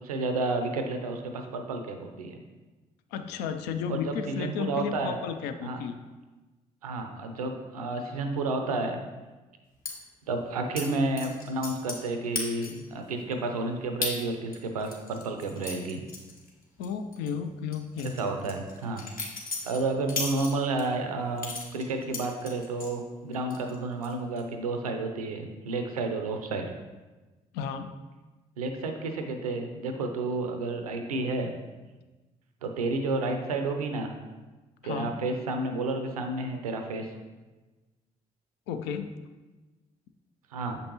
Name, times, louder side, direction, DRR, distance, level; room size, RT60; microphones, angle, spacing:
voice 1, 0.0-2.4 3.9-5.1 5.6-5.8 6.8-9.0 10.3-16.0 18.2-19.0 19.6-26.8 28.6-31.5 32.6-34.2 34.8-37.1 40.5-40.8, right 3 dB, 85° right, 5 dB, 0.5 m, -31 dB
voice 2, 3.1-6.0 16.8-18.2 27.5-27.9 34.8-35.1 38.7-39.1, left 7 dB, 65° left, 8 dB, 0.5 m, -33 dB
sound 1, 9.9-10.0 10.8-10.9 11.2-12.1 12.4-12.9 13.3-13.4 14.0-14.2 14.5-16.9 17.1-17.3 17.7-20.9 21.4-22.9 23.3-23.8 24.0-24.4, left 3 dB, 50° left, 1.4 m, -36 dB
6.7 x 5.2 x 3.0 m, 1.2 s
figure-of-eight pair, 45°, 18 cm